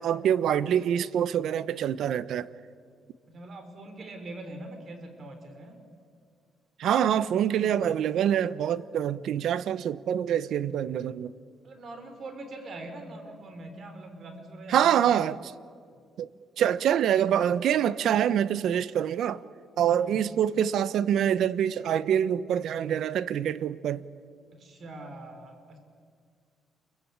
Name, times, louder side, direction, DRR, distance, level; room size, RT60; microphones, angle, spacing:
voice 1, 0.0-2.5 6.8-11.3 14.7-15.4 16.2-16.3 16.6-19.4 19.8-24.0, right 9 dB, 75° right, 0.9 m, -25 dB
voice 2, 3.3-5.8 11.6-15.2 15.9-16.0 19.9-20.2 24.5-25.8, right 2 dB, 50° right, 5.4 m, -43 dB
29.0 x 23.5 x 8.8 m
cardioid pair, 90°, 0 cm